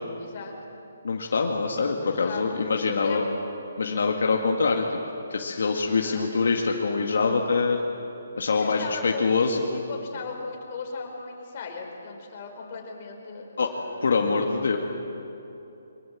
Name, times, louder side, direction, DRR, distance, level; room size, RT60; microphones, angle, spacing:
voice 1, 0.2-0.5 1.9-3.3 6.0-6.5 8.5-9.6 9.9-14.0, left 4 dB, 35° left, 1 dB, 4.4 m, -37 dB
voice 2, 1.0-3.2 3.8-4.9 5.3-7.8 8.4-9.8 13.6-13.7 14.0-14.8, left 4 dB, 70° left, 1 dB, 2.1 m, -24 dB
23.5 x 22.5 x 7.5 m, 2.9 s
hypercardioid pair, 170°, 0 cm